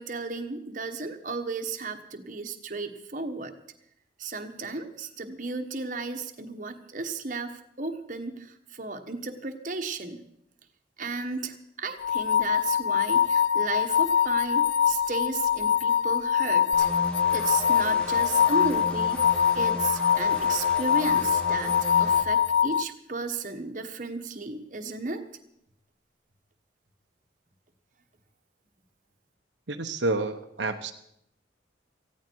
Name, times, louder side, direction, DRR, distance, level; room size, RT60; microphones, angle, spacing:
voice 1, 0.0-3.5 4.2-10.2 11.0-16.9 17.3-25.2, right 3 dB, 45° right, 5 dB, 1.3 m, -34 dB
sound 1, 12.0-22.8, left 8 dB, 75° left, 0.5 m, -23 dB
sound 2, 16.7-22.2, equal, 5° left, 1.9 m, -37 dB
voice 2, 29.7-30.9, right 2 dB, 75° right, 5 dB, 1.0 m, -29 dB
18.5 x 15.5 x 4.7 m, 0.75 s
head